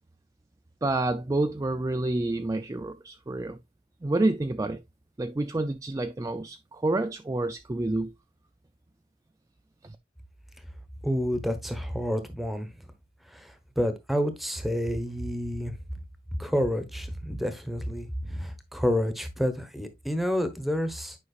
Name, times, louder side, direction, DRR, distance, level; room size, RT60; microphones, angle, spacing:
voice 1, 0.8-3.6 4.0-4.8 5.2-8.1 9.8-10.0, right 2 dB, 20° right, 0.4 m, -28 dB
voice 2, 11.0-12.7 13.3-13.4 13.8-15.7 16.4-21.2, equal, ahead, 1.1 m, -29 dB
9.7 x 5.3 x 2.5 m
head